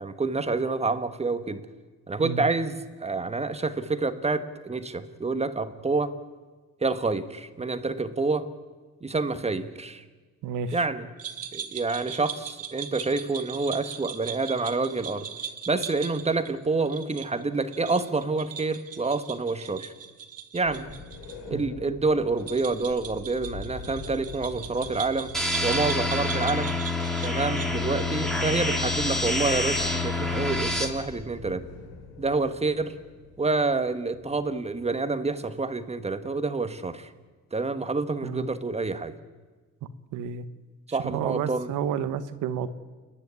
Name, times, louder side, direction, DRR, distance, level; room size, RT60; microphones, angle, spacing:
voice 1, 0.0-1.7 2.1-6.1 6.8-8.5 9.0-10.0 10.7-11.1 11.5-15.3 15.7-19.9 20.5-20.9 21.5-25.3 25.6-26.8 27.2-31.6 32.2-32.9 33.4-37.1 37.5-39.1 40.9-41.7, right 3 dB, 20° right, 10 dB, 1.4 m, -28 dB
voice 2, 10.4-10.8 21.5-21.6 38.2-38.5 40.1-40.4 40.9-42.7, right 7 dB, 85° right, 12 dB, 1.2 m, -30 dB
sound 1, 11.2-21.4 21.6-21.7 22.4-28.1, right 8 dB, 50° right, 1.7 m, -39 dB
sound 2, 20.6-37.1, left 4 dB, 85° left, 3.5 m, -46 dB
sound 3, 25.3-30.9, left 2 dB, ahead, 3.1 m, -27 dB
29.0 x 10.0 x 9.7 m, 1.4 s
cardioid pair, 90°, 30 cm